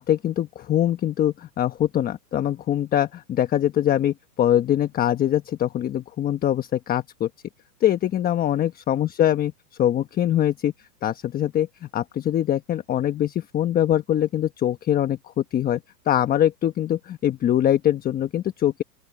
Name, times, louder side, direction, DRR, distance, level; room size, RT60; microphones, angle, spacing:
voice 1, 0.0-7.3 7.8-9.5 9.8-10.7 11.0-15.8 16.1-18.8, left 11 dB, 20° left, 1.2 m, -23 dB
open air
hypercardioid pair, 140°, 49 cm